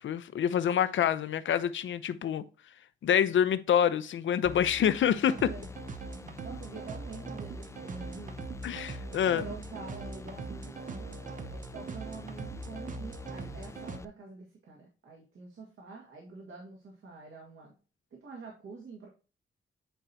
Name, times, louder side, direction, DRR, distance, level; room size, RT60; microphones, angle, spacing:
voice 1, 0.0-2.4 3.0-5.5 8.6-9.4, left 9 dB, 75° left, 0.6 m, -27 dB
sound 1, 4.5-14.1, left 4 dB, 15° left, 0.3 m, -46 dB
sound 2, 5.2-14.0, right 5 dB, 40° right, 0.5 m, -42 dB
voice 2, 5.3-5.7 6.4-8.4 9.3-11.2 11.5-17.8 18.1-19.1, right 4 dB, 85° right, 1.9 m, -46 dB
9.0 x 4.4 x 2.7 m
wide cardioid pair, 155°, 20 cm